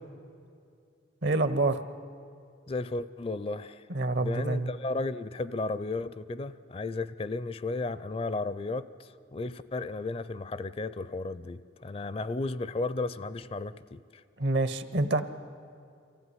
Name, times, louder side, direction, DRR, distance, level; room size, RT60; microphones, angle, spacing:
voice 1, 1.2-1.8 3.9-4.7 14.4-15.2, right 2 dB, 65° right, 11 dB, 1.0 m, -27 dB
voice 2, 2.7-3.8 4.2-14.0, left 3 dB, 30° left, 15 dB, 0.4 m, -34 dB
24.5 x 15.5 x 9.8 m, 2.4 s
head